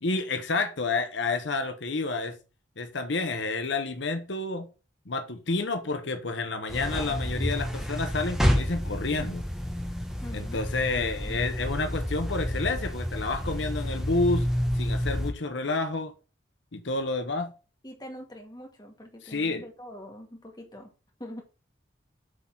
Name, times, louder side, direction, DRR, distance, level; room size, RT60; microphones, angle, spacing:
voice 1, 0.0-2.4 2.8-4.7 5.1-9.4 10.3-14.5 14.7-16.1 16.7-17.5 19.2-19.6, left 3 dB, 75° left, 1.1 m, -29 dB
sound 1, 6.7-15.3, equal, ahead, 1.1 m, -29 dB
voice 2, 10.2-10.6 11.2-11.5 17.8-20.9 21.2-21.4, equal, 20° left, 1.8 m, -44 dB
8.2 x 4.1 x 5.8 m
head